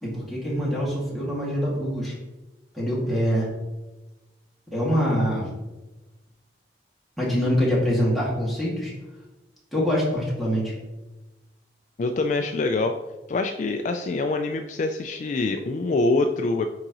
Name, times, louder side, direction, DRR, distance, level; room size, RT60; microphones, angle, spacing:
voice 1, 0.0-2.1 2.7-3.5 4.7-5.5 7.2-8.9 9.7-10.7, equal, ahead, -6 dB, 2.0 m, -24 dB
voice 2, 12.0-12.9 13.3-16.7, left 3 dB, 45° left, 6 dB, 0.3 m, -25 dB
9.4 x 3.8 x 3.0 m, 1.1 s
head